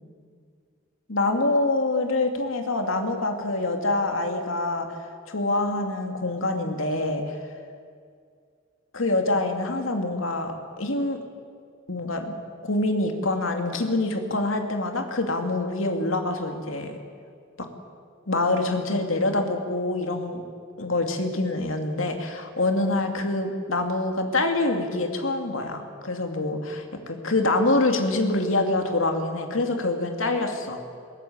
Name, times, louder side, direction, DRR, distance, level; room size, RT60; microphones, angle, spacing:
voice 1, 1.1-7.4 8.9-11.2 11.9-12.3 12.6-17.0 17.6-17.7 18.3-20.4 20.8-30.8, left 2 dB, 75° left, 4 dB, 2.5 m, -25 dB
21.5 x 18.0 x 8.7 m, 2.2 s
head